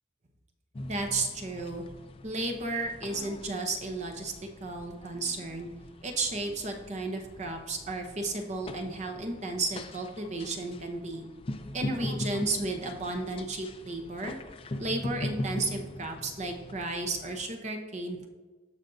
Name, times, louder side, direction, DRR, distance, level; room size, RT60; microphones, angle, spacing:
sound 1, 0.7-17.5, left 1 dB, 30° left, 0.4 m, -41 dB
voice 1, 0.9-1.8 2.2-4.3 4.6-5.7 6.0-11.3 11.7-14.3 14.8-18.3, right 2 dB, 35° right, 4 dB, 0.8 m, -33 dB
14.5 x 5.1 x 2.7 m, 1.3 s
head